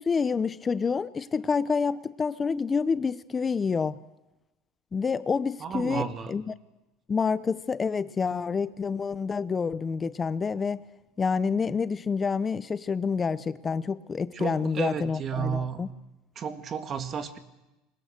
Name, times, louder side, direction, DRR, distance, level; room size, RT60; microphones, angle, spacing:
voice 1, 0.0-4.0 4.9-6.6 7.1-10.8 11.2-15.9, left 5 dB, 25° left, 16 dB, 0.7 m, -28 dB
voice 2, 5.6-6.3 14.3-15.9 16.4-17.4, right 7 dB, 40° right, 8 dB, 2.0 m, -32 dB
22.0 x 19.5 x 6.5 m, 1.0 s
hypercardioid pair, 90°, 0 cm